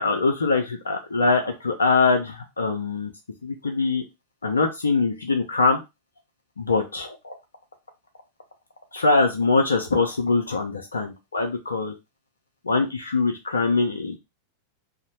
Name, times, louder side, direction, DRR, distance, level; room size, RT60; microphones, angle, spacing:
voice 1, 0.0-3.1 3.4-4.0 4.4-5.8 6.6-7.4 8.9-11.9 12.7-14.2, left 3 dB, 75° left, 4 dB, 0.4 m, -23 dB
2.7 x 2.0 x 2.8 m, 0.23 s
figure-of-eight pair, 90°, 0 cm